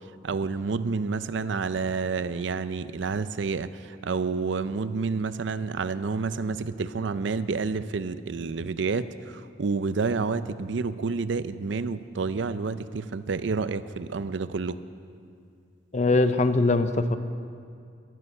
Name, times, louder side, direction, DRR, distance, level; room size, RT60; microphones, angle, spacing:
voice 1, 0.2-14.8, right 4 dB, 70° right, 13 dB, 0.5 m, -29 dB
voice 2, 15.9-17.2, left 2 dB, 35° left, 10 dB, 0.6 m, -22 dB
14.0 x 12.5 x 6.6 m, 2.3 s
head